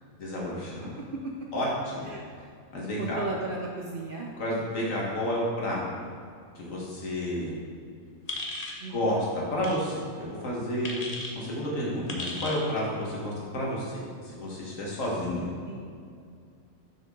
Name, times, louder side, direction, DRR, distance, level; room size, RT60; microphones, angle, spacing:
voice 1, 0.2-0.9 1.5-2.1 2.7-3.2 4.4-5.8 6.6-7.5 8.9-9.2 9.5-11.0 11.3-15.5, equal, 70° left, -4 dB, 2.0 m, -31 dB
voice 2, 0.8-1.3 2.0-2.2 3.0-4.3 8.8-9.2 15.7-16.0, right 2 dB, 55° right, 0 dB, 0.6 m, -36 dB
sound 1, 8.3-8.8 9.6-9.8 10.8-11.3 12.1-12.6, left 2 dB, 35° left, 0.7 m, -35 dB
6.7 x 6.0 x 3.8 m, 2.3 s
omnidirectional pair, 1.4 m